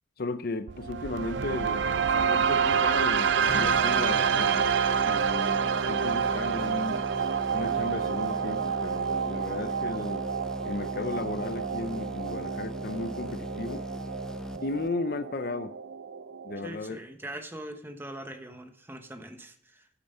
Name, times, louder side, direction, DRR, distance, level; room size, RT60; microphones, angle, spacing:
voice 1, 0.2-4.7 5.0-7.1 7.5-10.3 10.6-13.9 14.6-15.7 16.4-17.0, left 2 dB, 55° left, 0.6 m, -35 dB
sound 1, 0.7-16.7, right 6 dB, 75° right, 0.5 m, -28 dB
sound 2, 3.5-15.2, equal, 5° left, 0.4 m, -39 dB
voice 2, 16.6-19.9, right 1 dB, 10° right, 1.0 m, -42 dB
9.0 x 8.8 x 5.5 m
head